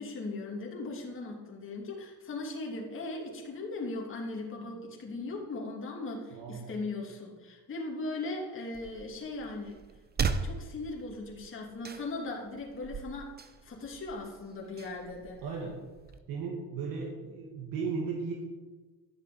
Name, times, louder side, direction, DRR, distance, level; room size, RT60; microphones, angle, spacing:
voice 1, 0.0-9.7 10.4-13.3 13.6-15.4, left 2 dB, 35° left, -2 dB, 2.9 m, -38 dB
voice 2, 6.3-6.7 15.4-15.8 16.3-18.3, right 5 dB, 70° right, -1 dB, 2.5 m, -36 dB
sound 1, 8.7-16.2, right 5 dB, 25° right, 1.0 m, -39 dB
12.0 x 7.5 x 8.6 m, 1.3 s
cardioid pair, 115°, 36 cm